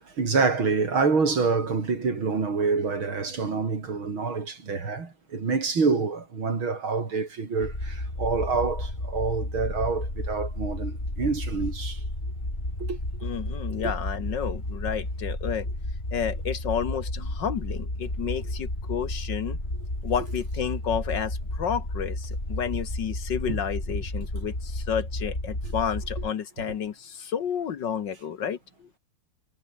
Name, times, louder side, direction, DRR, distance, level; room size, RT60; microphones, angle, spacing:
voice 1, 0.1-12.0 12.8-13.3 13.8-13.9 18.4-18.5 23.5-23.6 25.6-25.7, right 4 dB, 65° right, 4.4 m, -27 dB
sound 1, 7.6-26.3, left 1 dB, 25° left, 6.9 m, -32 dB
voice 2, 13.2-15.7 16.1-19.6 20.0-28.6, left 8 dB, 60° left, 1.7 m, -31 dB
omnidirectional pair, 2.4 m